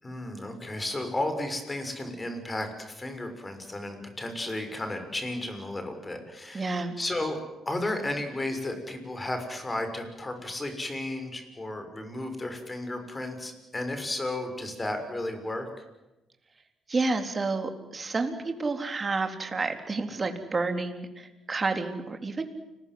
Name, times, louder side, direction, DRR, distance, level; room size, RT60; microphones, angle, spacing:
voice 1, 0.0-7.4 7.6-15.7, left 1 dB, 20° left, 7 dB, 6.6 m, -33 dB
voice 2, 6.5-7.0 16.9-22.4, right 3 dB, 30° right, 6 dB, 3.8 m, -30 dB
29.5 x 21.5 x 8.0 m, 1.0 s
cardioid pair, 90°, 0 cm